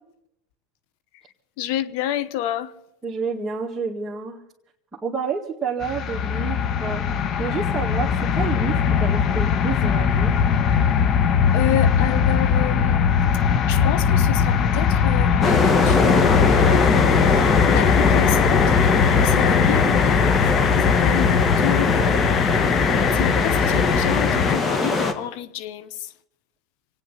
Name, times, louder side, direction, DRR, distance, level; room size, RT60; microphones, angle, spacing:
voice 1, 1.6-2.7 11.5-13.2 13.7-20.2 20.5-22.5 22.9-26.1, left 12 dB, 70° left, 1.0 m, -29 dB
voice 2, 3.0-4.4 5.0-7.1 7.4-10.4 19.6-19.9, right 5 dB, 20° right, 1.9 m, -29 dB
sound 1, 5.8-24.6, left 7 dB, 45° left, 0.9 m, -20 dB
sound 2, 15.4-25.1, left 3 dB, 25° left, 1.6 m, -21 dB
26.0 x 9.5 x 5.7 m
supercardioid pair, 105°, 0 cm